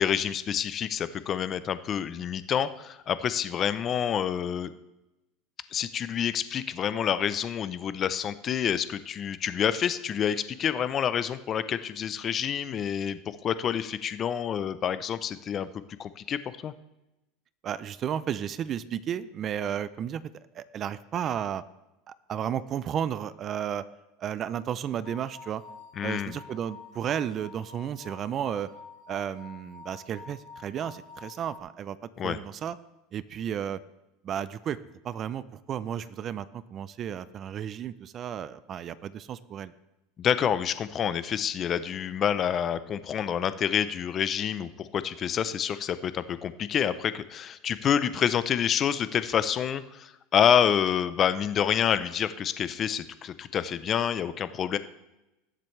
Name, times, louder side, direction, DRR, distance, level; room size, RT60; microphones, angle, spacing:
voice 1, 0.0-4.7 5.7-15.7 16.0-16.7 26.0-26.4 32.2-32.4 40.2-54.8, left 8 dB, 35° left, 14 dB, 0.6 m, -28 dB
voice 2, 17.6-20.2 20.5-21.6 22.1-23.8 24.2-25.6 26.0-28.7 29.1-32.0 32.2-32.8 33.1-33.8 34.2-34.8 35.0-39.7, right 9 dB, 35° right, 17 dB, 0.5 m, -33 dB
sound 1, 25.0-31.6, left 5 dB, 80° left, 3.3 m, -48 dB
19.0 x 7.5 x 3.3 m, 0.97 s
supercardioid pair, 120°, 0 cm